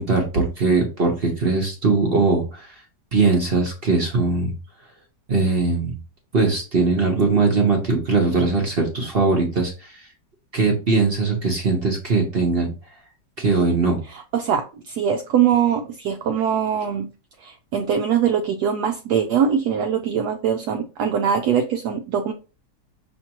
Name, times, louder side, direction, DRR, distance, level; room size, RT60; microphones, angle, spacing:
voice 1, 0.0-2.7 3.1-4.5 5.3-6.0 6.3-9.9 10.5-12.7 13.4-14.0, right 3 dB, 40° right, 1 dB, 0.9 m, -20 dB
voice 2, 14.3-17.1 17.4-22.3, right 8 dB, 70° right, 5 dB, 1.0 m, -22 dB
5.8 x 3.1 x 2.9 m, 0.32 s
omnidirectional pair, 1.9 m